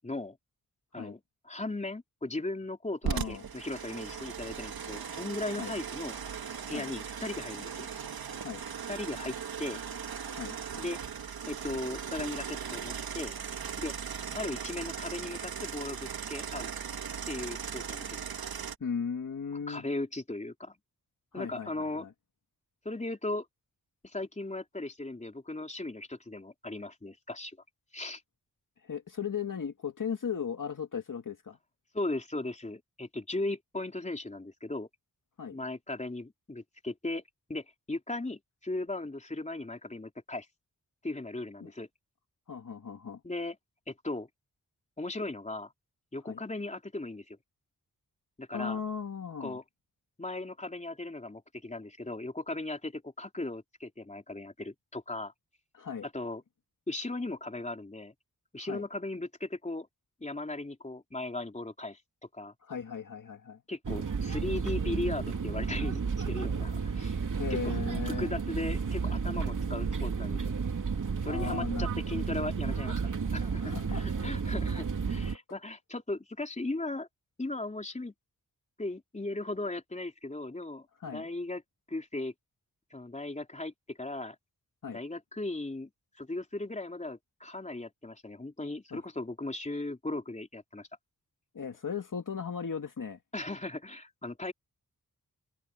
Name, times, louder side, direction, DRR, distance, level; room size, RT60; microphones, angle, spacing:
voice 1, 0.0-0.4 0.9-6.2 6.7-7.9 8.9-9.8 10.8-11.0 11.5-13.3 13.8-13.9 14.3-16.7 17.3-18.2 19.7-20.8 21.3-22.1 22.9-23.5 24.0-27.6 27.9-28.2 31.9-34.9 35.5-37.2 37.5-40.5 41.0-41.9 43.2-43.6 43.9-44.3 45.0-45.7 46.1-47.4 48.4-48.8 49.4-49.6 50.2-55.3 56.1-56.4 56.9-58.1 58.5-59.9 60.2-62.0 62.3-62.5 63.7-66.0 66.3-67.2 67.5-67.6 68.0-70.6 71.2-73.0 73.3-77.1 77.4-78.1 78.8-81.6 81.9-82.3 82.9-84.4 84.9-85.9 86.2-90.9 93.3-94.5, left 2 dB, 20° left, 3.7 m, -37 dB
voice 2, 3.0-3.4 5.6-5.7 6.7-6.9 8.4-8.6 10.4-10.6 18.8-19.9 21.3-21.7 22.0-22.1 28.8-31.6 35.4-35.6 41.6-41.7 42.5-43.2 46.3-46.4 48.5-49.6 55.7-56.1 58.6-58.8 62.6-63.6 67.4-68.3 71.3-71.9 73.6-74.1 81.0-81.3 84.8-85.0 88.9-89.0 91.5-93.2, left 6 dB, 60° left, 2.4 m, -37 dB
sound 1, 3.0-18.8, right 7 dB, 85° right, 1.9 m, -38 dB
sound 2, 63.8-75.4, right 5 dB, 60° right, 2.8 m, -32 dB
wide cardioid pair, 115°, 35 cm